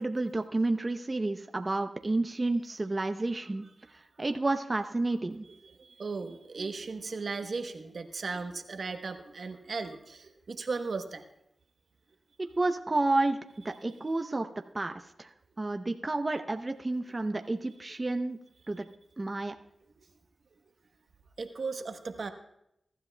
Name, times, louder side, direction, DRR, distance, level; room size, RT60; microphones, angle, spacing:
voice 1, 0.0-3.6 3.9-5.4 12.4-14.5 14.7-15.3 15.6-18.4 18.7-18.9 19.2-19.5, right 2 dB, 35° right, 6 dB, 0.7 m, -30 dB
voice 2, 5.5-11.2 21.4-22.3, right 4 dB, 70° right, 7 dB, 1.0 m, -36 dB
23.0 x 12.5 x 2.3 m, 0.80 s
cardioid pair, 50°, 0 cm